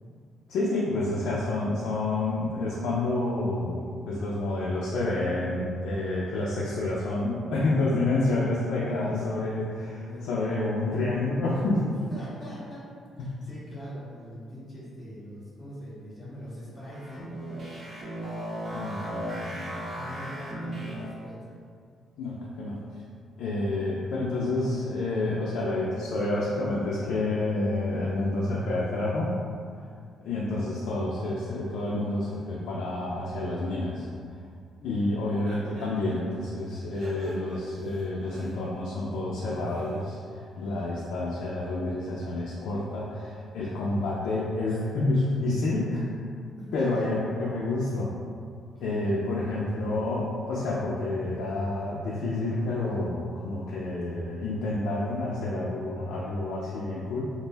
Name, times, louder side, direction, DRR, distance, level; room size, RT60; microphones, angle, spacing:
voice 1, 0.5-12.0 13.2-13.3 18.7-19.8 22.2-22.8 23.4-29.3 30.2-34.1 34.8-46.0 46.7-48.1 48.8-57.3, left 2 dB, 85° left, -6 dB, 0.3 m, -29 dB
voice 2, 8.9-9.2 10.0-10.8 11.8-12.8 13.1-17.3 19.9-21.4 35.0-35.6 43.6-43.7 46.6-47.1 48.8-49.0, left 1 dB, 30° left, -9 dB, 0.8 m, -42 dB
sound 1, 16.8-21.3, right 1 dB, 40° right, 0.7 m, -36 dB
sound 2, 35.4-36.1 36.7-38.9 39.3-40.1, equal, 85° right, 1.1 m, -45 dB
2.5 x 2.1 x 3.3 m, 2.2 s
cardioid pair, 90°, 0 cm